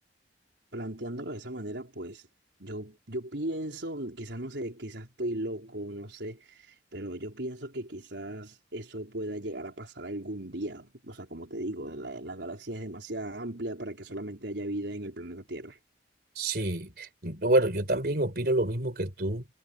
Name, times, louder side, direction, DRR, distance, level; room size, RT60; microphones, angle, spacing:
voice 1, 0.7-2.2 2.6-15.8, right 1 dB, 80° right, 3.9 m, -37 dB
voice 2, 16.4-19.5, right 1 dB, 55° right, 4.3 m, -27 dB
head